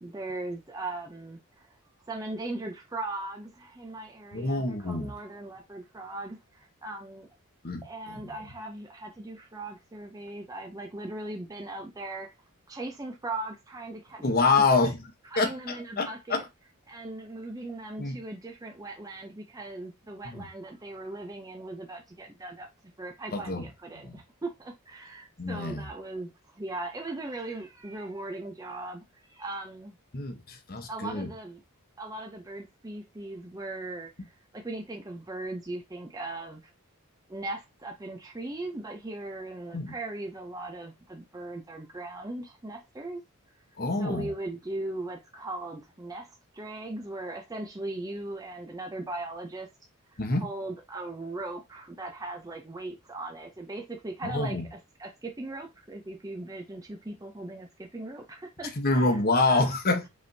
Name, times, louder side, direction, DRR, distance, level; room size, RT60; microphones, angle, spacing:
voice 1, 0.0-1.8 2.0-7.3 7.8-12.3 12.7-14.9 15.2-16.4 16.9-22.7 23.0-30.0 30.9-31.6 32.0-36.7 37.3-43.2 43.5-43.6 43.9-49.7 50.1-59.7, right 2 dB, 15° right, 0.5 m, -39 dB
voice 2, 4.3-5.1 7.6-8.3 14.2-15.0 15.4-16.4 18.0-18.2 20.2-20.5 23.3-23.6 24.0-24.2 25.4-25.9 30.1-31.3 39.7-39.9 43.8-44.3 50.2-50.5 54.2-54.7 58.8-60.1, left 3 dB, 45° left, 1.0 m, -27 dB
5.3 x 3.5 x 2.7 m
head